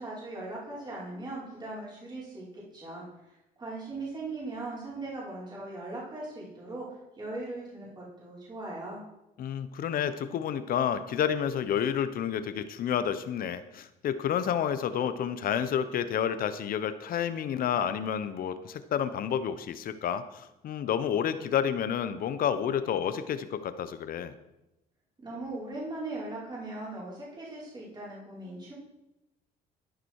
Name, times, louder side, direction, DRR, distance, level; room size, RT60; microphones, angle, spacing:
voice 1, 0.0-9.0 25.2-28.7, right 2 dB, 25° right, -7 dB, 5.6 m, -39 dB
voice 2, 9.4-24.3, left 8 dB, 60° left, 12 dB, 1.1 m, -30 dB
13.0 x 11.0 x 4.9 m, 0.93 s
cardioid pair, 110°, 17 cm